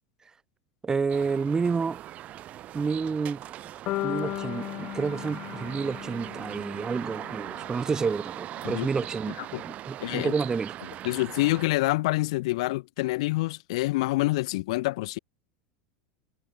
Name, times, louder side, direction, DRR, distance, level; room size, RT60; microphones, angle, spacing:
voice 1, 0.8-2.0 2.7-3.4 4.0-10.7, right 5 dB, 20° right, 2.2 m, -29 dB
sound 1, 1.1-11.7, right 13 dB, 45° right, 6.7 m, -40 dB
sound 2, 3.9-8.0, left 18 dB, 50° left, 5.4 m, -36 dB
voice 2, 10.0-10.3 11.0-15.2, left 20 dB, 70° left, 0.8 m, -27 dB
hypercardioid pair, 105°, 3 cm